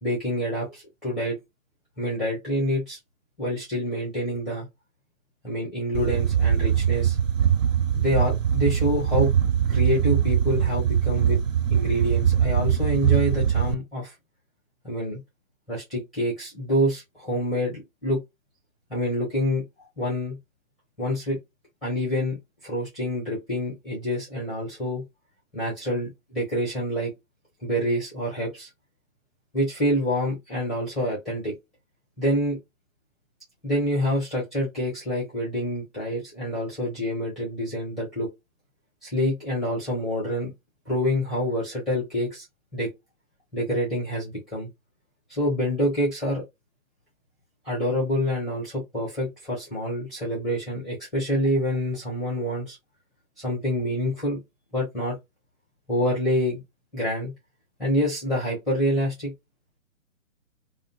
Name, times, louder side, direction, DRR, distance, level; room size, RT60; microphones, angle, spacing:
voice 1, 0.0-1.4 2.0-3.0 3.4-4.7 5.4-7.2 7.9-9.3 9.7-11.4 11.7-14.1 14.8-15.2 15.7-18.2 18.9-19.6 20.0-20.4 21.0-21.4 21.8-22.4 22.6-25.0 25.5-27.1 27.6-28.7 29.5-31.5 32.2-32.6 33.6-38.3 39.0-40.5 40.9-42.4 42.7-42.9 43.5-44.7 45.3-46.4 47.6-52.8 53.4-54.4 54.7-55.2 55.9-56.6 56.9-57.3 57.8-59.3, equal, ahead, 0.6 m, -27 dB
sound 1, 5.9-13.7, right 9 dB, 70° right, 0.6 m, -22 dB
2.5 x 2.3 x 2.6 m
figure-of-eight pair, 135°, 41 cm